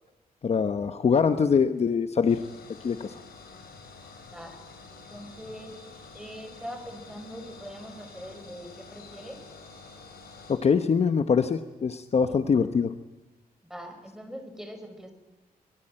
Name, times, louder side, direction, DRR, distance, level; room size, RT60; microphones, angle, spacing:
voice 1, 0.4-2.4 2.8-3.2 10.5-12.9, left 6 dB, 45° left, 9 dB, 1.1 m, -23 dB
sound 1, 2.3-10.6, left 4 dB, 80° left, 7.1 m, -48 dB
voice 2, 4.3-4.6 4.9-5.8 6.1-9.4 12.2-12.4 13.6-15.1, equal, 5° right, 6 dB, 5.5 m, -42 dB
24.5 x 23.0 x 8.9 m, 1.0 s
wide cardioid pair, 130°, 15 cm